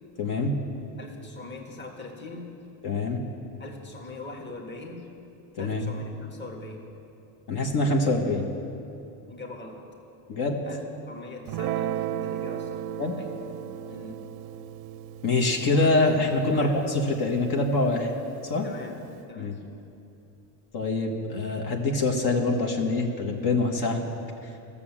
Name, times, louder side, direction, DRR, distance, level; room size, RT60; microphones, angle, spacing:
voice 1, 0.2-0.5 2.8-3.2 5.6-5.8 7.5-8.4 10.3-10.6 13.0-13.1 15.2-18.1 18.4-18.7 19.3-19.5 20.7-24.0, left 2 dB, 60° left, 0 dB, 1.6 m, -25 dB
voice 2, 1.0-2.5 3.6-5.1 5.6-6.8 9.3-9.8 10.6-12.8 13.2-13.3 13.9-14.2 16.5-16.7 18.6-19.0 19.3-19.6, left 2 dB, 25° left, 1 dB, 1.6 m, -41 dB
Guitar, 11.5-18.1, right 11 dB, 60° right, 0.5 m, -35 dB
14.0 x 7.0 x 7.3 m, 2.7 s
cardioid pair, 105°, 43 cm